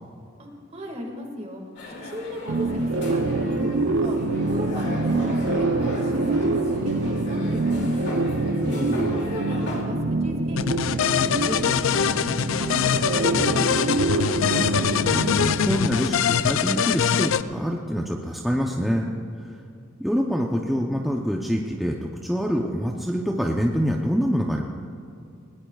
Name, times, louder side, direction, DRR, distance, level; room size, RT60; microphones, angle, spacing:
voice 1, 0.4-8.1 8.6-12.3 12.6-14.3, equal, 35° right, 2 dB, 2.0 m, -36 dB
sound 1, 1.8-9.8, left 2 dB, 60° left, 2.5 m, -38 dB
sound 2, 2.5-16.2, right 2 dB, 75° right, 0.7 m, -25 dB
voice 2, 8.6-9.2 15.1-19.6 20.0-24.6, equal, ahead, -1 dB, 0.7 m, -26 dB
sound 3, 10.6-17.4, left 8 dB, 85° left, 0.4 m, -23 dB
21.0 x 18.5 x 2.4 m, 2.6 s
head